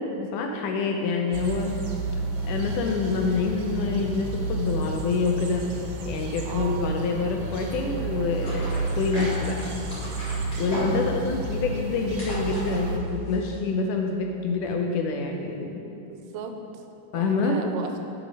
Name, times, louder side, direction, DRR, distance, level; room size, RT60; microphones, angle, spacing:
voice 1, 0.0-1.8 2.4-5.7 6.1-9.7 10.6-15.7 17.1-17.6, left 4 dB, 80° left, 2 dB, 2.0 m, -27 dB
sound 1, 1.3-13.0, right 2 dB, 65° right, 1.9 m, -31 dB
voice 2, 6.5-7.0 10.6-11.1 15.9-16.9 17.1-17.9, right 5 dB, 90° right, 5 dB, 2.3 m, -37 dB
sound 2, 8.4-13.6, equal, 35° left, 1.9 m, -36 dB
8.5 x 6.1 x 5.1 m, 2.9 s
omnidirectional pair, 3.9 m